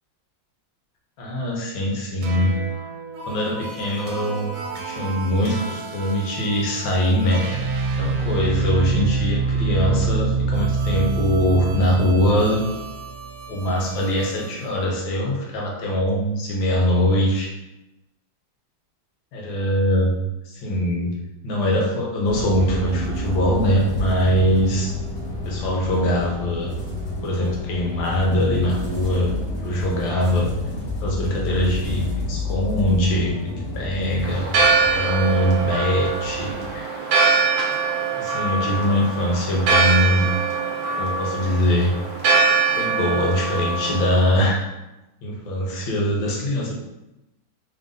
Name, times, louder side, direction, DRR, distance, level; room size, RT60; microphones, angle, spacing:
voice 1, 1.2-2.6 3.2-4.6 4.9-7.5 8.0-12.6 13.5-17.5 19.3-20.2 20.5-21.1 21.4-24.9 25.4-26.7 27.2-29.3 29.6-30.5 31.0-34.5 34.9-36.8 38.2-40.3 40.9-41.9 42.7-44.6 45.2-46.7, equal, 80° left, -1 dB, 1.6 m, -22 dB
sound 1, 2.2-14.7, right 4 dB, 85° right, 1.4 m, -27 dB
sound 2, 22.2-36.8, left 1 dB, 45° left, 1.3 m, -30 dB
Church bell, 34.2-44.4, right 4 dB, 60° right, 1.1 m, -22 dB
3.6 x 2.6 x 3.7 m, 0.95 s
omnidirectional pair, 2.1 m